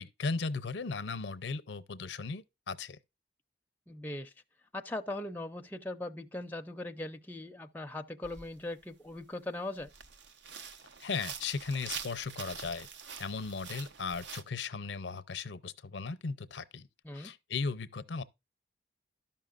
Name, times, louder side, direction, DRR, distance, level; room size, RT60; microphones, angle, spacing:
voice 1, 0.0-3.0 11.0-12.9 13.2-16.9 17.1-18.2, left 4 dB, 80° left, 0.6 m, -37 dB
voice 2, 3.9-4.3 4.7-9.9 17.0-17.3, left 1 dB, 10° left, 0.4 m, -40 dB
sound 1, 8.2-8.5 9.1-9.2 9.8-14.4, right 6 dB, 75° right, 0.7 m, -45 dB
13.0 x 5.6 x 2.4 m
head